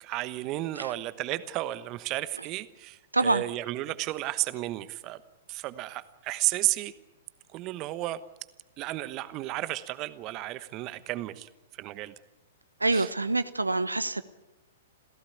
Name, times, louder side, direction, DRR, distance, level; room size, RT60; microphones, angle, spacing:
voice 1, 0.0-5.2 5.5-6.9 7.5-8.2 8.8-11.5 11.8-12.1 12.9-13.1, right 16 dB, 35° right, 15 dB, 1.1 m, -33 dB
voice 2, 3.1-3.4 12.8-14.2, right 2 dB, 85° right, 14 dB, 0.9 m, -26 dB
27.5 x 16.0 x 8.4 m, 1.0 s
figure-of-eight pair, 110°, 0 cm